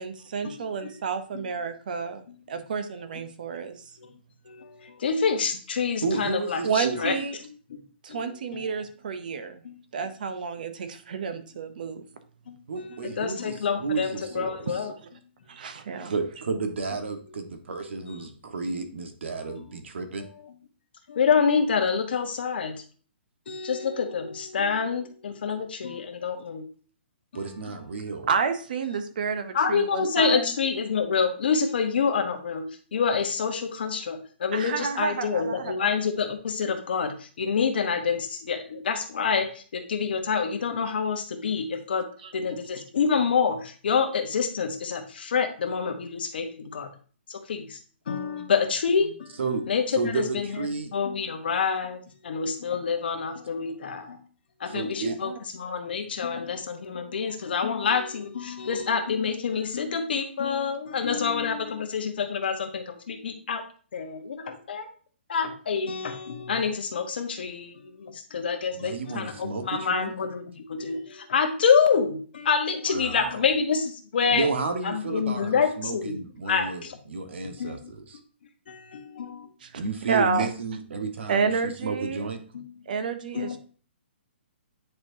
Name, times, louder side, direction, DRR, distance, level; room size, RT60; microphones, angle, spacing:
voice 1, 0.0-3.9 6.6-7.4 8.0-9.6 9.9-12.0 14.7-15.1 15.5-16.1 28.3-30.5 34.5-35.9 42.2-42.3 55.0-55.4 61.1-61.5 79.6-80.5 81.3-82.3 82.9-83.6, right 5 dB, 45° right, 9 dB, 0.7 m, -30 dB
voice 2, 4.5-7.1 8.1-8.2 8.5-8.7 9.6-9.8 12.5-12.6 13.0-14.9 16.0-16.1 19.4-19.7 21.1-22.7 23.5-26.6 27.7-27.8 29.5-42.1 42.3-46.9 47.3-47.8 48.1-49.3 49.7-50.5 50.9-54.2 54.6-55.3 55.6-63.6 63.9-64.9 65.3-74.5 74.8-76.2 76.5-77.0 77.4-77.9 78.7-79.5 82.5-82.7 83.3-83.6, left 6 dB, 55° left, 6 dB, 1.2 m, -27 dB
voice 3, 6.0-7.1 12.7-14.7 16.0-20.2 27.3-28.3 49.4-49.6 50.0-50.9 54.7-55.2 68.7-70.1 72.9-73.3 74.3-78.2 79.7-81.5 81.8-82.4, right 4 dB, 70° right, 6 dB, 1.4 m, -32 dB
9.6 x 4.4 x 2.7 m, 0.41 s
hypercardioid pair, 175°, 6 cm